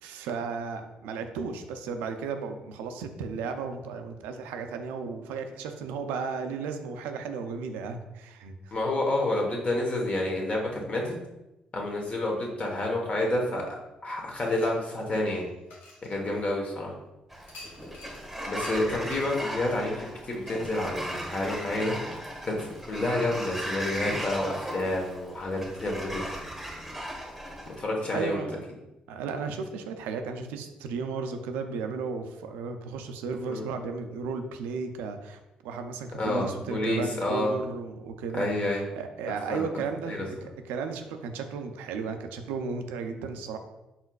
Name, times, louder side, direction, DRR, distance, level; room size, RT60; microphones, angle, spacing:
voice 1, 0.0-8.8 28.1-28.6 29.1-43.6, right 5 dB, 85° right, 7 dB, 0.4 m, -34 dB
voice 2, 8.7-11.1 11.7-13.8 14.0-15.4 16.0-16.9 18.5-26.3 27.6-28.4 33.4-33.6 36.2-37.5 38.3-38.8 39.5-39.6 40.1-40.3, left 1 dB, 45° left, 0 dB, 1.1 m, -29 dB
sound 1, 14.3-16.7 17.5-18.2 18.6-18.8 19.1-19.3, left 2 dB, 80° left, 1.1 m, -49 dB
Sliding door, 17.3-27.8, equal, ahead, 1.1 m, -37 dB
4.1 x 3.8 x 2.3 m, 0.96 s
supercardioid pair, 60°, 3 cm